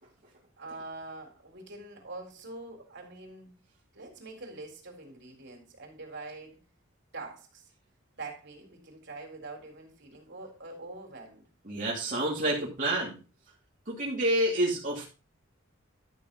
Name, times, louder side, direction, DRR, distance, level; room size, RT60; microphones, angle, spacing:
voice 1, 0.6-3.5 3.9-6.6 7.1-7.7 8.1-11.4, right 2 dB, 60° right, 3.7 m, -44 dB
voice 2, 11.6-13.2 13.9-15.0, right 1 dB, 40° right, 2.8 m, -28 dB
12.0 x 6.6 x 3.9 m
head